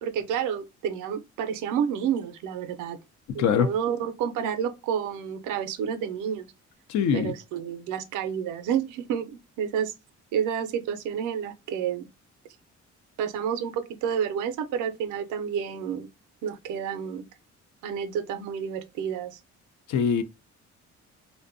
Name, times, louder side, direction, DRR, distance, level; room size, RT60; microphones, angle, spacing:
voice 1, 0.0-3.0 3.3-6.5 7.1-9.9 10.3-12.1 13.2-16.1 16.4-17.2 17.8-19.4, right 8 dB, 90° right, 0.5 m, -30 dB
voice 2, 3.4-3.7 6.9-7.3 19.9-20.2, left 7 dB, 70° left, 0.5 m, -22 dB
2.6 x 2.1 x 2.5 m
cardioid pair, 90°, 30 cm